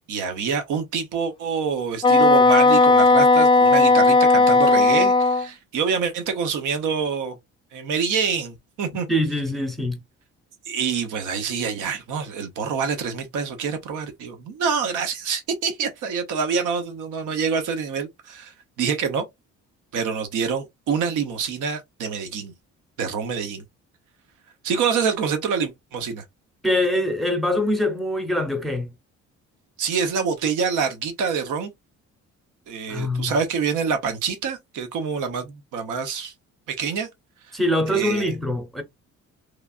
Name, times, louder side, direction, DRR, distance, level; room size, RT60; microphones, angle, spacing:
voice 1, 0.1-7.3 7.7-9.1 10.7-19.2 19.9-22.5 23.0-23.6 24.6-26.2 29.8-31.7 32.7-36.3 36.7-37.1 37.5-37.6 37.9-38.3, right 6 dB, 80° right, 0.8 m, -26 dB
Wind instrument woodwind instrument, 2.0-5.5, left 3 dB, 15° left, 0.3 m, -15 dB
voice 2, 9.1-10.0 26.6-28.9 32.9-33.4 37.5-38.8, left 1 dB, ahead, 0.8 m, -23 dB
3.2 x 2.3 x 2.4 m
cardioid pair, 90°, 30 cm